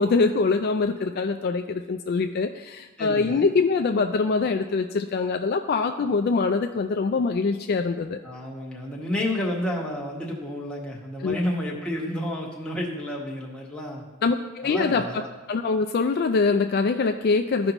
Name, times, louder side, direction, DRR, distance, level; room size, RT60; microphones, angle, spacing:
voice 1, 0.0-8.2 11.2-11.4 14.2-15.1 15.5-17.7, left 4 dB, 50° left, 6 dB, 0.3 m, -24 dB
voice 2, 3.0-3.5 8.2-14.0 14.6-15.3, left 1 dB, 5° left, -3 dB, 1.3 m, -30 dB
14.0 x 5.3 x 3.0 m, 1.2 s
head